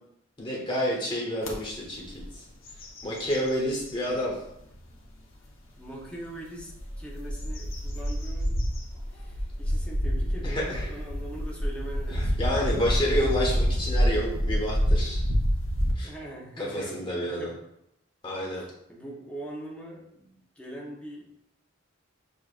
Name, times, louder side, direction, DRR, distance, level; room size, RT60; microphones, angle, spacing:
voice 1, 0.4-2.4 3.0-4.4 10.4-10.9 12.1-15.2 16.0-16.1 16.6-17.5 18.2-18.6, equal, 25° left, -3 dB, 1.1 m, -29 dB
sound 1, 1.4-1.5 2.1-2.3 2.6-4.1 4.7-4.8 6.6-15.9, equal, 85° left, 0.9 m, -27 dB
voice 2, 5.8-6.7 7.0-8.6 9.1-12.4 16.0-17.6 18.5-21.3, right 1 dB, 5° left, -3 dB, 0.7 m, -42 dB
6.7 x 2.4 x 2.4 m, 0.80 s
head